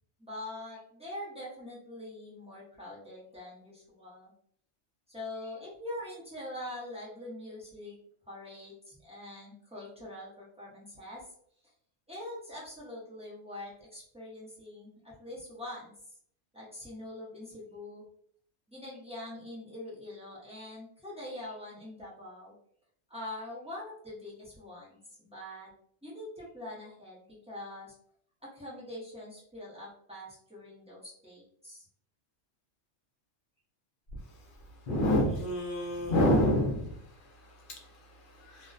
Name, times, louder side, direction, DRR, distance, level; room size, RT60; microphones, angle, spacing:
voice 1, 0.2-4.3 5.1-8.0 8.3-11.3 11.6-11.7 12.1-15.9 16.5-18.0 18.7-22.6 23.1-25.7 26.0-28.0 28.4-31.9, left 1 dB, 5° right, -7 dB, 0.6 m, -44 dB
voice 2, 34.1-38.7, left 1 dB, 55° left, 1 dB, 0.7 m, -29 dB
2.4 x 2.1 x 2.4 m, 0.65 s
omnidirectional pair, 1.2 m